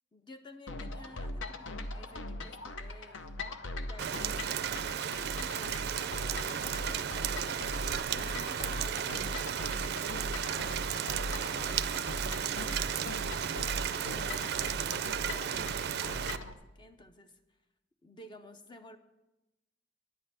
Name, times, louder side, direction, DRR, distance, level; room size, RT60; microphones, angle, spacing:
voice 1, 0.1-3.4 3.8-7.5 8.1-13.5 13.8-17.4 18.0-19.0, left 1 dB, 25° left, 8 dB, 0.6 m, -53 dB
sound 1, 0.7-16.5, left 1 dB, 75° left, 0.7 m, -40 dB
Rain, 4.0-16.4, right 9 dB, 55° right, 0.4 m, -34 dB
10.0 x 5.6 x 8.1 m, 1.0 s
head